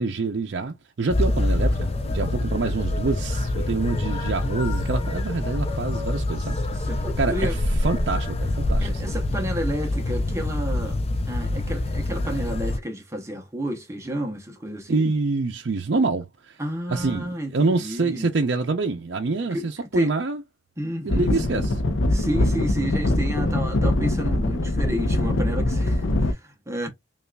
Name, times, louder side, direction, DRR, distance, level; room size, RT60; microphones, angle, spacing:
voice 1, 0.0-6.9 7.2-7.6 7.8-9.1 14.9-16.6 16.9-20.4 21.0-21.8, right 3 dB, 60° right, 0.5 m, -26 dB
sound 1, 1.1-12.8, left 1 dB, 30° left, 0.5 m, -25 dB
voice 2, 6.7-7.6 8.8-11.0 11.3-15.1 16.6-18.3 19.4-20.1 20.8-21.3 22.1-26.9, equal, 15° right, 0.7 m, -31 dB
sound 2, 21.1-26.3, left 1 dB, 90° left, 0.6 m, -23 dB
5.4 x 2.4 x 2.2 m
head